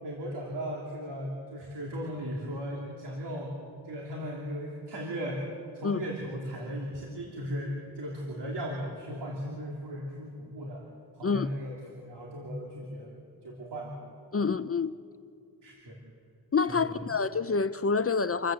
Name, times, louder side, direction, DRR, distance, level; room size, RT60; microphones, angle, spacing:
voice 1, 0.0-3.5 3.8-5.5 5.7-10.8 11.1-13.1 13.4-14.0 14.4-14.6 15.6-16.0 16.7-17.1, equal, 75° right, 3.2 m, -37 dB
voice 2, 14.3-14.9 16.5-18.5, left 5 dB, 35° left, 0.5 m, -27 dB
28.0 x 14.0 x 7.8 m
wide cardioid pair, 95°, 41 cm